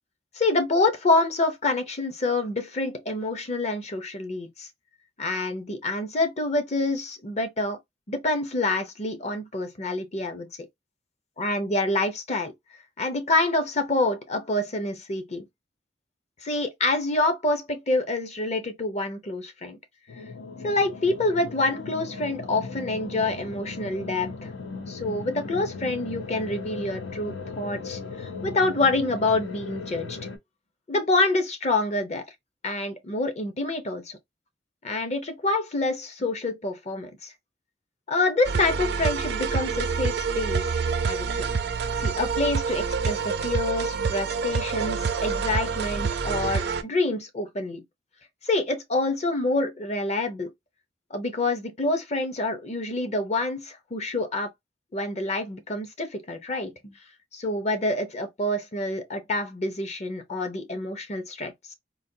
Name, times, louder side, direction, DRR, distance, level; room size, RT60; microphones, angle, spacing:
voice 1, 0.3-4.7 5.2-7.8 8.1-10.5 11.4-12.5 13.0-15.5 16.4-19.8 20.6-24.5 24.9-30.2 30.9-32.2 32.6-34.2 34.8-37.3 38.1-40.6 41.1-41.5 42.0-47.8 48.4-50.5 51.1-54.5 54.9-56.9 57.3-61.7, left 2 dB, 35° left, 0.7 m, -27 dB
sound 1, 20.1-30.4, left 4 dB, 85° left, 0.7 m, -37 dB
sound 2, 38.4-46.8, right 5 dB, 60° right, 0.5 m, -27 dB
4.0 x 2.3 x 2.6 m
head